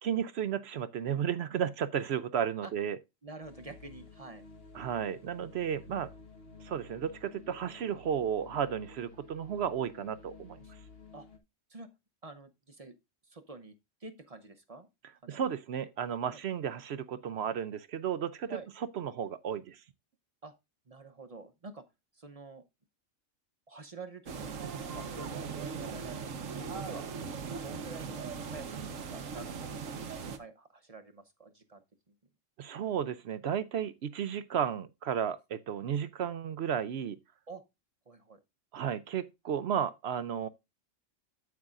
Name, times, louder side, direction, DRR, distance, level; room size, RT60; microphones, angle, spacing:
voice 1, 0.0-3.0 4.7-6.1 6.6-10.6 15.3-18.6 19.0-19.8 32.6-37.2 38.7-40.5, right 8 dB, 65° right, 0.8 m, -33 dB
voice 2, 3.2-4.5 10.6-10.7 11.1-11.3 11.7-11.9 12.2-13.0 13.2-14.9 15.2-15.4 16.3-16.4 18.5-18.7 20.4-20.5 20.9-21.8 22.1-22.6 23.7-24.5 24.7-26.3 26.6-27.0 27.6-32.1 37.5-37.6 38.1-38.4, right 3 dB, 35° right, 0.7 m, -48 dB
sound 1, 3.4-11.4, left 4 dB, 50° left, 1.4 m, -53 dB
sound 2, 24.3-30.4, right 5 dB, 85° right, 1.4 m, -39 dB
9.4 x 8.4 x 2.5 m
omnidirectional pair, 1.3 m